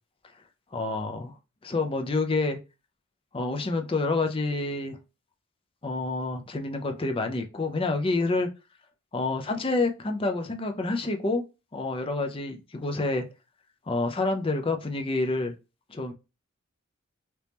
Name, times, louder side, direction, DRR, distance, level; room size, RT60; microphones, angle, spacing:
voice 1, 0.7-1.3 1.6-2.6 3.3-5.0 5.8-8.5 9.1-11.4 11.7-13.2 13.9-15.5 15.9-16.1, left 3 dB, 25° left, 4 dB, 0.5 m, -28 dB
2.9 x 2.8 x 3.4 m, 0.28 s
head